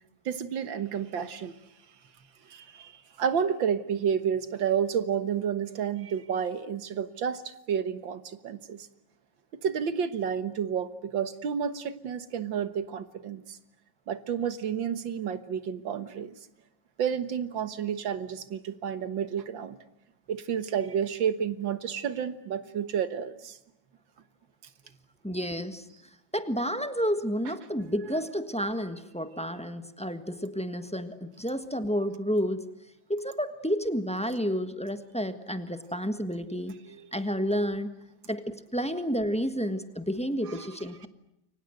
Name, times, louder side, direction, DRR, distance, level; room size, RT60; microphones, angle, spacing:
voice 1, 0.3-1.6 2.5-8.9 9.6-13.6 14.1-16.4 17.0-19.8 20.3-23.6 36.9-37.1 40.5-40.7, right 7 dB, 80° right, 12 dB, 2.1 m, -30 dB
voice 2, 25.2-25.8 26.3-32.6 33.1-36.7 37.1-38.0 38.2-41.1, equal, 5° left, 9 dB, 1.3 m, -30 dB
29.0 x 24.0 x 7.9 m, 0.83 s
omnidirectional pair, 2.1 m